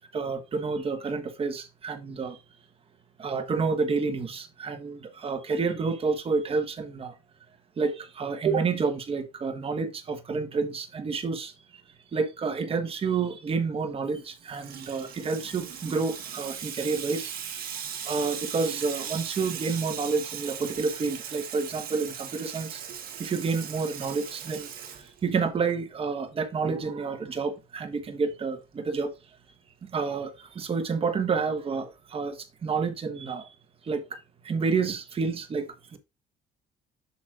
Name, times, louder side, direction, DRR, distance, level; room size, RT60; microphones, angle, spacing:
voice 1, 0.1-2.4 3.2-7.2 7.8-11.5 12.1-17.3 18.0-22.8 23.2-24.7 25.2-29.1 29.9-33.5 33.8-34.2 34.4-36.0, right 4 dB, 35° right, 1.3 m, -29 dB
Water tap faucet / Sink (filling or washing), 14.2-25.6, right 8 dB, 60° right, 1.7 m, -38 dB
8.4 x 6.2 x 2.4 m
cardioid pair, 110°, 17 cm